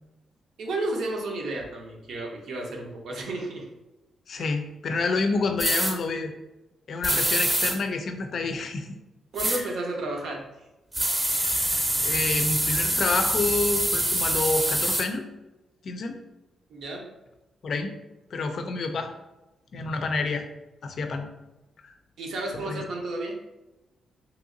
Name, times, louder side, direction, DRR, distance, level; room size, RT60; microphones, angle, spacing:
voice 1, 0.6-3.7 4.3-4.5 9.3-10.4 16.7-17.1 22.2-23.3, right 2 dB, 75° right, 0 dB, 0.7 m, -32 dB
voice 2, 4.3-6.3 6.9-8.9 9.5-9.7 11.4-15.2 15.8-16.2 17.6-17.9 18.3-19.1 19.7-20.4 20.8-21.3 21.8-21.9 22.5-22.8, left 3 dB, 60° left, 6 dB, 0.4 m, -28 dB
sound 1, 5.6-5.9 7.0-7.7 9.4-9.6 10.9-15.0, right 1 dB, 20° right, 0.6 m, -25 dB
3.0 x 2.8 x 2.5 m, 1.0 s
cardioid pair, 80°, 0 cm